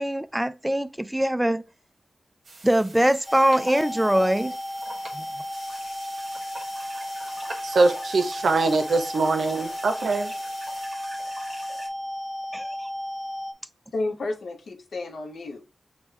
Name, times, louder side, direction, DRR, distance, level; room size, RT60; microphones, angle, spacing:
voice 1, 0.0-1.7 2.6-4.6 5.1-5.3 12.5-12.7, right 1 dB, 10° right, 0.3 m, -22 dB
sound 1, 2.4-10.9, right 2 dB, 60° right, 1.2 m, -45 dB
sound 2, 3.3-13.5, left 1 dB, 45° left, 0.8 m, -34 dB
sound 3, 5.5-11.9, right 1 dB, 30° right, 1.3 m, -44 dB
voice 2, 7.6-10.3, right 3 dB, 80° right, 0.7 m, -23 dB
voice 3, 13.9-15.7, left 2 dB, 80° left, 0.7 m, -31 dB
6.5 x 2.2 x 3.2 m
cardioid pair, 70°, 0 cm